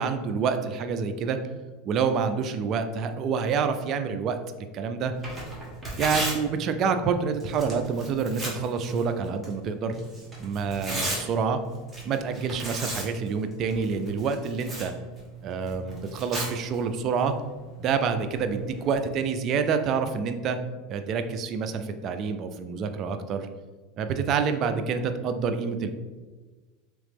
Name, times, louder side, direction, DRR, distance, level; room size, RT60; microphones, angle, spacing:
voice 1, 0.0-1.4 1.9-4.4 4.7-5.1 6.0-9.9 10.4-11.6 12.0-14.9 15.4-17.3 17.8-20.6 20.9-23.5 24.0-25.9, right 5 dB, 40° right, 8 dB, 0.4 m, -27 dB
Tearing, 5.1-19.0, right 2 dB, 10° right, 1.2 m, -37 dB
3.7 x 3.0 x 3.4 m, 1.3 s
supercardioid pair, 115°, 0 cm